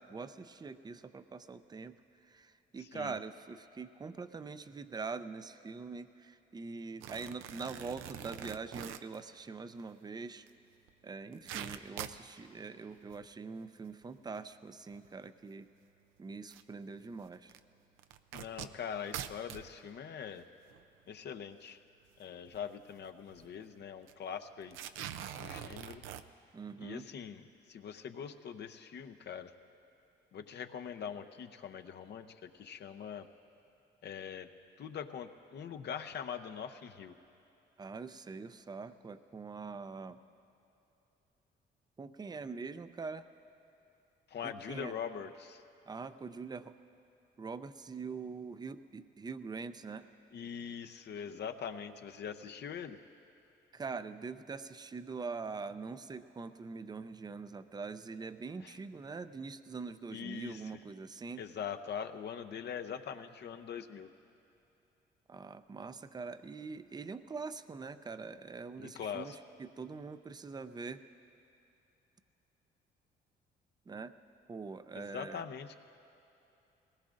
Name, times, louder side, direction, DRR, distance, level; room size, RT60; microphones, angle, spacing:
voice 1, 0.0-10.5 11.0-15.7 16.2-17.5 26.5-27.1 37.8-40.2 42.0-43.3 44.4-44.9 45.9-46.8 47.4-50.0 53.7-61.4 65.3-71.0 73.9-74.1 74.5-75.4, right 4 dB, 20° right, 11 dB, 0.5 m, -43 dB
voice 2, 2.8-3.2 18.3-20.4 21.1-21.8 22.2-24.8 25.4-26.1 26.8-29.5 30.3-33.3 34.0-34.5 34.8-37.1 44.3-45.6 50.3-53.0 58.6-58.8 60.1-60.7 61.4-64.1 68.8-69.4 74.9-75.8, left 7 dB, 60° left, 7 dB, 0.7 m, -42 dB
sound 1, 7.0-9.2 10.5-10.6 10.9-11.0 11.2-12.3 13.0-13.2 13.9-14.0 15.0-15.1 16.5-16.6 17.5-17.6 18.0-19.7 20.4-20.5 20.7-20.8 22.5-22.7 23.0-23.1 23.3-23.5 24.1-24.2 24.7-26.2, right 10 dB, 90° right, 0.5 m, -43 dB
20.5 x 19.0 x 2.5 m, 2.9 s
cardioid pair, 90°, 20 cm